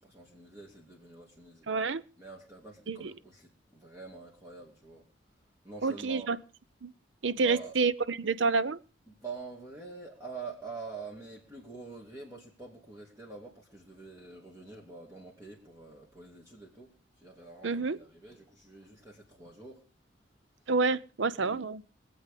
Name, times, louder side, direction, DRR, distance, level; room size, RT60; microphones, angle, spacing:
voice 1, 0.0-1.7 2.2-5.1 5.6-6.3 7.3-7.8 9.1-19.8 21.4-21.7, right 4 dB, 15° right, 2.5 m, -46 dB
voice 2, 1.7-2.0 2.9-3.1 5.8-6.4 6.8-6.9 7.2-8.8 17.6-18.0 20.7-21.8, right 4 dB, 80° right, 0.7 m, -28 dB
22.5 x 8.0 x 5.1 m
head